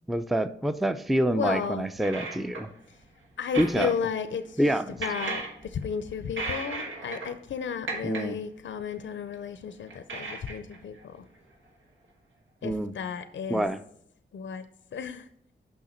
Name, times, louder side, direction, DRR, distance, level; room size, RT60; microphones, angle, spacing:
voice 1, 0.1-2.7 3.6-3.9 4.6-5.0 8.0-8.4 12.6-12.9 13.5-13.8, right 1 dB, ahead, 11 dB, 0.4 m, -26 dB
voice 2, 1.3-1.9 3.4-4.6 5.0-5.4 5.7-11.2 12.6-13.7 14.3-14.6 14.9-15.3, left 7 dB, 80° left, 11 dB, 0.5 m, -33 dB
sound 1, 2.0-2.8 3.5-4.2 4.9-5.9 6.3-7.4 7.7-8.3 9.3-9.4 9.9-11.0, right 3 dB, 85° right, 1.5 m, -35 dB
6.4 x 5.7 x 4.3 m, 0.69 s
cardioid pair, 65°, 19 cm